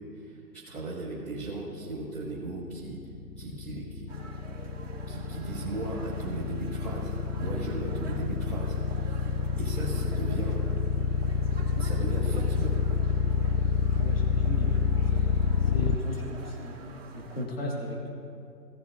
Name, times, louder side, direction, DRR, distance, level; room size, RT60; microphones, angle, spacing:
voice 1, 0.2-3.0 3.4-4.1 5.1-8.8 9.0-9.3 9.6-10.6 11.8-12.8, right 2 dB, 5° left, -14 dB, 2.5 m, -37 dB
sound 1, 2.7-16.0, left 5 dB, 80° left, 0.7 m, -27 dB
sound 2, 4.1-17.5, right 3 dB, 40° right, 2.1 m, -45 dB
voice 2, 13.9-14.7 15.1-18.1, left 1 dB, 35° left, -1 dB, 1.7 m, -37 dB
18.0 x 7.8 x 2.5 m, 2.6 s
hypercardioid pair, 175°, 50 cm